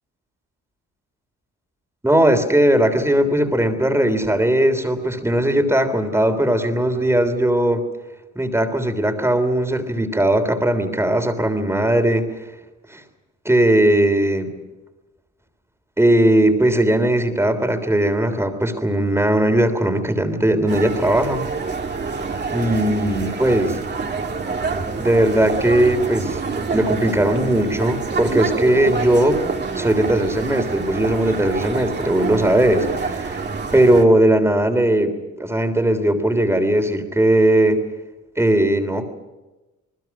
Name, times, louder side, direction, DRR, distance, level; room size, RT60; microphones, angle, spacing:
voice 1, 2.0-7.8 8.4-12.3 12.9-13.0 13.5-14.5 16.0-21.5 22.5-23.8 24.9-26.4 26.7-29.4 29.7-33.4 33.7-35.1 35.4-37.8 38.4-39.0, right 1 dB, 10° right, 7 dB, 3.5 m, -18 dB
sound 1, 20.7-34.0, right 4 dB, 35° right, 2.6 m, -27 dB
28.0 x 20.0 x 6.1 m, 1.1 s
cardioid pair, 90°, 30 cm